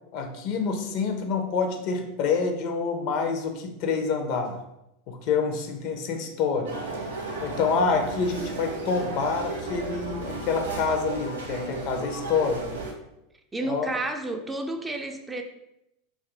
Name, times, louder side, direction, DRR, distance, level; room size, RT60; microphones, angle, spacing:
voice 1, 0.1-4.6 5.1-6.7 7.4-12.6 13.6-13.9, left 5 dB, 55° left, 5 dB, 0.6 m, -27 dB
sound 1, 6.7-12.9, right 3 dB, 90° right, 0.6 m, -34 dB
voice 2, 13.5-15.4, right 2 dB, 15° right, 4 dB, 0.4 m, -31 dB
2.6 x 2.4 x 3.7 m, 0.85 s
hypercardioid pair, 90°, 0 cm